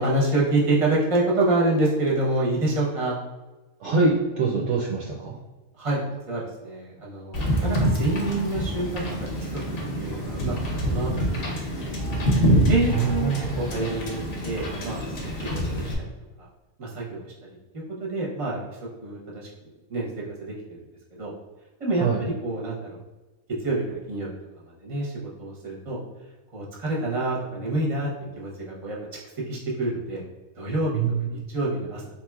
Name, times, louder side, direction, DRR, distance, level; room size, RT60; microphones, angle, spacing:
voice 1, 0.0-3.2 5.8-6.0 6.3-9.5 10.0-10.6 10.8-11.2 11.7-12.0 12.6-15.0 15.4-15.9 16.4-16.5 16.8-17.3 18.0-18.6 19.0-19.5 19.9-20.1 20.4-20.8 21.1-21.3 21.8-23.0 23.6-24.3 24.8-25.1 25.4-26.0 26.5-28.1 28.4-29.0 29.5-30.2 30.6-30.9 31.2-32.0, right 2 dB, 30° right, -4 dB, 0.8 m, -27 dB
voice 2, 3.8-5.4 12.9-13.5 22.0-22.2 30.9-31.3, right 4 dB, 65° right, -4 dB, 0.8 m, -24 dB
Wind / Boat Water vehicle, 7.3-15.9, equal, 55° left, 0.8 m, -26 dB
4.0 x 3.0 x 2.3 m, 1.2 s
omnidirectional pair, 1.4 m